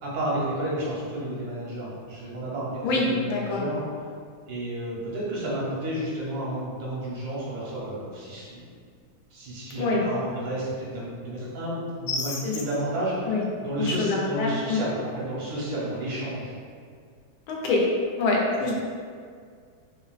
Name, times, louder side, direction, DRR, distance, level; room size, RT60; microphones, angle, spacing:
voice 1, 0.0-3.9 4.5-8.6 9.3-16.5, right 1 dB, 80° right, -6 dB, 1.5 m, -31 dB
voice 2, 2.8-3.6 9.8-10.0 12.1-12.6 13.3-13.4 13.9-14.8 17.5-17.8 18.2-18.7, left 3 dB, 85° left, -2 dB, 1.4 m, -25 dB
3.6 x 2.2 x 2.3 m, 2.1 s
omnidirectional pair, 2.1 m